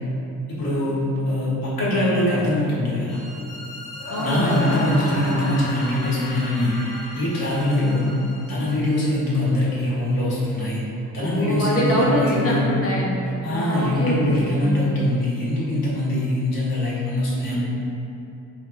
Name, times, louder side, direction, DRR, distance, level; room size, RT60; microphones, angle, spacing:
voice 1, 0.5-3.2 4.2-6.8 7.1-8.1 8.5-10.8 11.1-12.7 13.4-17.6, left 1 dB, 50° left, -7 dB, 1.4 m, -23 dB
sound 1, 3.1-8.9, left 1 dB, ahead, 0.6 m, -40 dB
sound 2, 4.0-8.2, left 1 dB, 75° left, 0.7 m, -32 dB
voice 2, 4.1-4.9 5.2-5.6 7.8-8.2 11.2-14.9 17.5-17.6, equal, 30° left, -5 dB, 0.9 m, -25 dB
4.5 x 2.3 x 3.8 m, 2.7 s
figure-of-eight pair, 45°, 46 cm